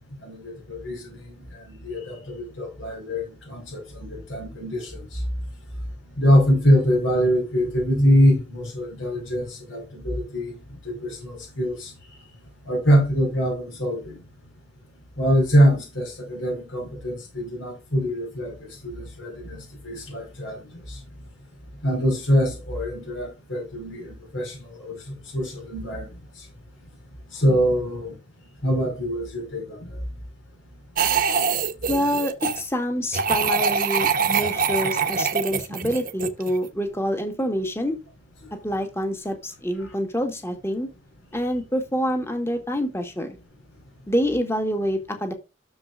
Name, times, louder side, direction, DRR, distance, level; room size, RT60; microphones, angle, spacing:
voice 1, 0.2-5.2 6.2-10.5 10.8-11.9 12.6-14.2 15.2-21.0 21.8-26.1 26.4-26.5 27.3-28.1 28.6-30.0 39.8-39.9, equal, 80° left, 5.0 m, -24 dB
sound 1, 31.0-32.6 33.1-36.6, right 6 dB, 45° right, 1.1 m, -24 dB
voice 2, 31.9-38.0 38.6-40.9 41.3-43.4 44.1-45.3, equal, 15° left, 1.5 m, -26 dB
12.5 x 7.0 x 2.5 m
head